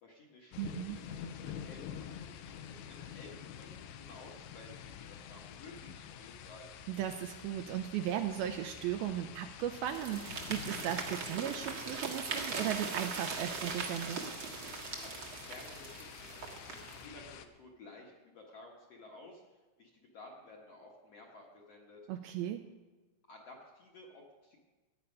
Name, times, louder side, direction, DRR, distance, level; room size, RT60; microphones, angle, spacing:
voice 1, 0.0-6.7 15.0-19.4 19.8-22.0 23.3-24.7, left 2 dB, 55° left, -2 dB, 1.9 m, -54 dB
sound 1, 0.5-17.5, left 8 dB, 85° left, 2.8 m, -48 dB
voice 2, 0.6-1.0 6.9-14.2 22.1-22.6, right 11 dB, 80° right, 7 dB, 2.3 m, -36 dB
sound 2, 9.9-17.1, right 4 dB, 60° right, 1.3 m, -40 dB
16.5 x 9.7 x 5.4 m, 1.2 s
omnidirectional pair, 4.8 m